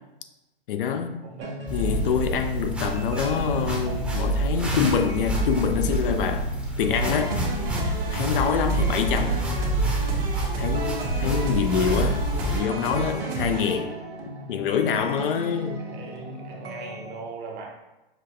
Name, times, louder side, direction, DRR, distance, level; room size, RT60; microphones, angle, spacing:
voice 1, 0.7-1.2 1.7-6.5 6.8-7.4 7.8-9.4 10.1-10.2 10.6-13.9 14.5-15.8, left 7 dB, 65° left, 0.5 m, -26 dB
voice 2, 1.2-1.8 8.0-8.4 15.8-17.7, right 4 dB, 35° right, 1.0 m, -39 dB
sound 1, 1.4-17.1, right 1 dB, 90° right, 1.1 m, -38 dB
sound 2, 1.7-12.6, right 1 dB, 5° right, 0.8 m, -28 dB
sound 3, 6.9-13.8, right 2 dB, 70° right, 1.2 m, -31 dB
5.6 x 2.2 x 3.6 m
hypercardioid pair, 115°, 29 cm